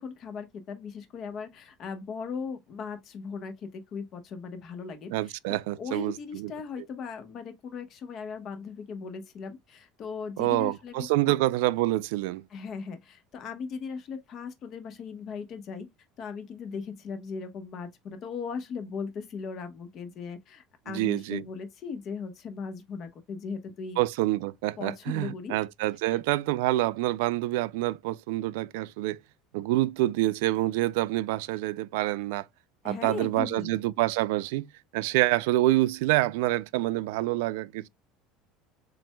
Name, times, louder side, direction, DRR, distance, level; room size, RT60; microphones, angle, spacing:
voice 1, 0.0-11.3 12.5-15.9 16.2-24.0 24.8-25.6 26.1-26.2 32.8-33.8, left 5 dB, 40° left, 1.0 m, -38 dB
voice 2, 5.1-6.5 10.4-12.5 20.9-21.4 24.0-29.2 29.5-32.5 32.8-34.7 34.9-37.9, right 17 dB, 85° right, 0.3 m, -27 dB
7.2 x 2.6 x 2.2 m
cardioid pair, 155°, 0 cm